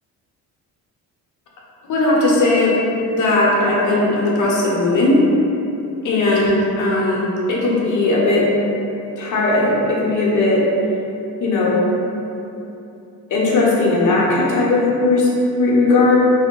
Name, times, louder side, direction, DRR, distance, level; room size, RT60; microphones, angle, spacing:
voice 1, 1.9-2.7 3.1-5.2 6.0-8.5 9.2-10.6 11.4-11.8 13.3-16.2, left 2 dB, 55° left, -4 dB, 0.8 m, -17 dB
2.7 x 2.1 x 3.7 m, 2.9 s
cardioid pair, 105°, 37 cm